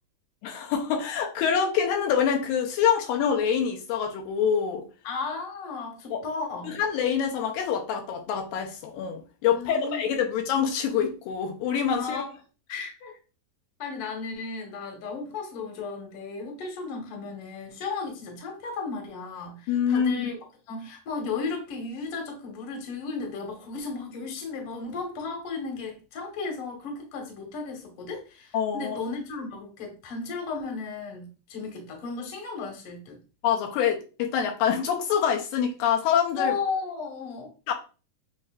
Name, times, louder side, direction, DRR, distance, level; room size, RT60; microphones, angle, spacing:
voice 1, 0.4-4.8 6.1-6.2 6.6-12.2 19.7-20.3 28.5-29.0 33.4-36.5 37.7-37.8, left 8 dB, 85° left, 2.4 m, -25 dB
voice 2, 5.0-6.7 9.5-10.0 11.9-12.3 12.7-13.2 13.8-20.4 20.7-33.2 36.4-37.5, left 4 dB, 55° left, 1.7 m, -34 dB
7.7 x 2.7 x 2.4 m
omnidirectional pair, 4.0 m